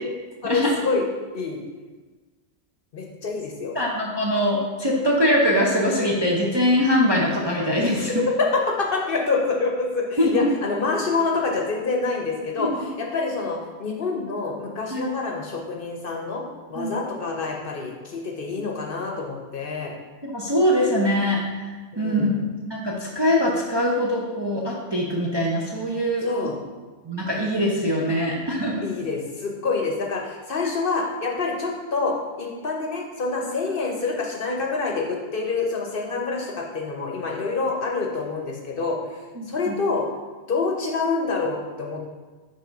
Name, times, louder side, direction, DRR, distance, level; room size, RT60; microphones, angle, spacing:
voice 1, 0.4-1.1 1.3-1.6 2.9-3.7 7.9-12.7 13.0-16.4 16.7-19.9 21.9-22.5 26.2-26.6 28.8-39.2 39.5-40.0 40.5-42.1, left 4 dB, 50° left, 0 dB, 0.9 m, -27 dB
voice 2, 3.7-8.1 10.2-10.5 12.6-12.7 14.9-15.0 16.8-16.9 20.2-22.3 22.6-26.3 27.0-28.8 39.4-39.8, equal, 30° right, -3 dB, 0.5 m, -22 dB
5.6 x 3.7 x 5.2 m, 1.3 s
omnidirectional pair, 1.3 m